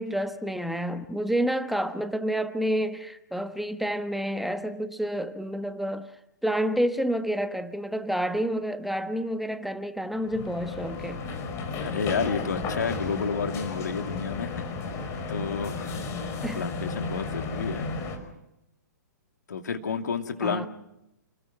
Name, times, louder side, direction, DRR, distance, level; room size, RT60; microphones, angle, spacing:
voice 1, 0.0-6.1 6.4-11.2 16.4-16.7 20.4-20.7, equal, ahead, 1.1 m, -29 dB
sound 1, 10.2-18.2, left 3 dB, 30° left, 5.2 m, -33 dB
voice 2, 11.8-14.7 15.3-16.1 16.5-17.9 19.5-20.7, left 6 dB, 70° left, 2.7 m, -31 dB
29.5 x 20.5 x 5.9 m
figure-of-eight pair, 120°, 10 cm